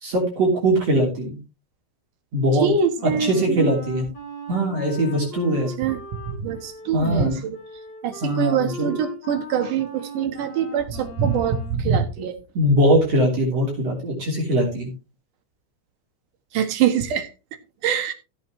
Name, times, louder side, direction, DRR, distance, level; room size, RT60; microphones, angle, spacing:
voice 1, 0.0-1.4 2.3-2.7 3.3-4.1 4.5-5.7 6.9-7.4 8.2-8.9 12.6-14.9, right 1 dB, 50° right, 4.3 m, -21 dB
voice 2, 2.6-3.7 5.8-7.6 8.0-12.4 16.5-17.3 17.8-18.1, right 7 dB, 75° right, 2.9 m, -24 dB
Wind instrument woodwind instrument, 3.0-11.8, left 1 dB, 75° left, 5.6 m, -39 dB
16.0 x 8.1 x 3.1 m
omnidirectional pair, 3.7 m